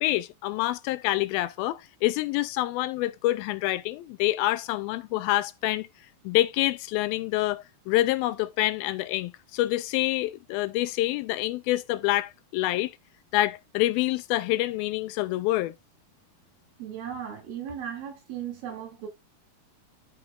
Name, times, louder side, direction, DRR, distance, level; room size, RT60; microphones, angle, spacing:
voice 1, 0.0-5.9 6.2-12.9 13.3-15.7, left 16 dB, 85° left, 2.4 m, -27 dB
voice 2, 16.8-19.1, right 9 dB, 75° right, 4.3 m, -36 dB
12.5 x 4.8 x 2.4 m
omnidirectional pair, 4.2 m